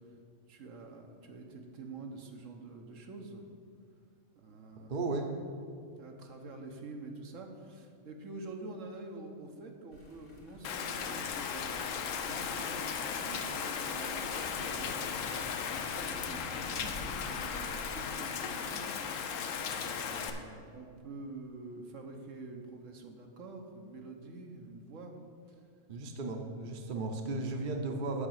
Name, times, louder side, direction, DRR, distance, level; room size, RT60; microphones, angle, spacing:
voice 1, 0.5-3.5 4.3-5.0 6.0-15.5 15.9-18.9 19.3-19.4 19.7-25.2 25.5-25.6, right 3 dB, 80° right, 2 dB, 1.3 m, -47 dB
voice 2, 4.9-5.3 25.9-28.3, right 3 dB, 45° right, 4 dB, 0.9 m, -35 dB
sound 1, 9.9-18.4, equal, 60° left, 2.3 m, -53 dB
Rain, 10.6-20.3, left 6 dB, 80° left, 1.1 m, -36 dB
8.5 x 5.1 x 7.4 m, 2.3 s
omnidirectional pair, 1.3 m